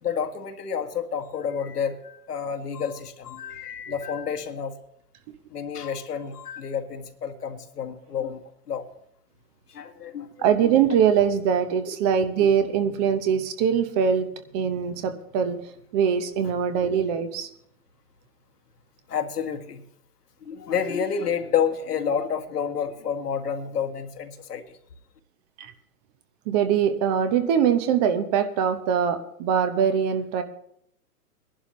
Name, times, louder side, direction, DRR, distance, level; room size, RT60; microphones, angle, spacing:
voice 1, 0.0-4.7 5.5-8.8 9.7-10.3 10.6-10.8 12.4-12.5 19.1-19.8 20.4-24.8, left 7 dB, 75° left, 6 dB, 1.8 m, -29 dB
voice 2, 10.4-14.3 14.5-15.6 15.9-17.5 25.6-25.7 26.5-30.4, right 8 dB, 25° right, 9 dB, 0.8 m, -22 dB
21.5 x 11.0 x 3.1 m, 0.71 s
hypercardioid pair, 135°, 47 cm